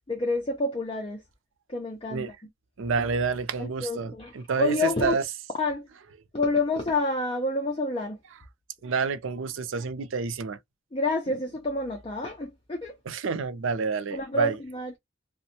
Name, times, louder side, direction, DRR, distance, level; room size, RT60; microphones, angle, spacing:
voice 1, 0.1-1.2 1.7-2.3 3.6-4.3 4.6-5.1 5.6-5.9 6.3-8.2 10.9-12.9 14.1-15.0, left 2 dB, 25° left, 0.5 m, -28 dB
voice 2, 2.8-5.2 8.8-10.6 13.1-14.6, right 5 dB, 70° right, 0.5 m, -29 dB
2.9 x 2.1 x 2.8 m
head